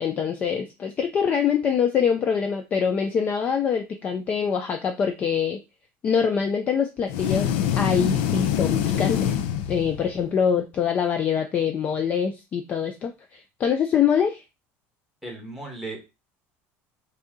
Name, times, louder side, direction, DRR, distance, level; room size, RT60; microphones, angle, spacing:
voice 1, 0.0-5.6 6.0-9.3 9.7-14.4, left 7 dB, 25° left, 6 dB, 0.3 m, -24 dB
sound 1, 7.1-10.3, left 9 dB, 85° left, 0.5 m, -25 dB
voice 2, 15.2-16.0, right 2 dB, ahead, -1 dB, 1.1 m, -36 dB
4.0 x 2.7 x 3.5 m, 0.26 s
cardioid pair, 175°, 6 cm